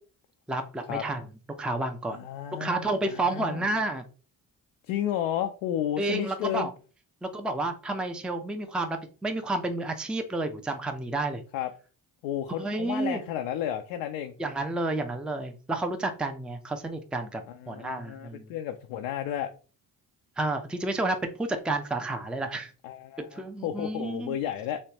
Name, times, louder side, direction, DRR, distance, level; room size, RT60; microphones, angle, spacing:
voice 1, 0.5-1.2 1.6-2.2 2.6-4.0 6.0-6.7 7.2-11.4 12.5-13.2 14.4-17.4 17.7-18.5 20.4-22.7 23.2-24.4, right 2 dB, ahead, 6 dB, 0.5 m, -30 dB
voice 2, 2.1-3.7 4.9-6.7 11.5-11.7 12.2-14.3 17.5-19.5 22.8-24.8, left 10 dB, 75° left, 5 dB, 0.5 m, -32 dB
3.3 x 3.2 x 2.8 m, 0.37 s
hypercardioid pair, 45°, 46 cm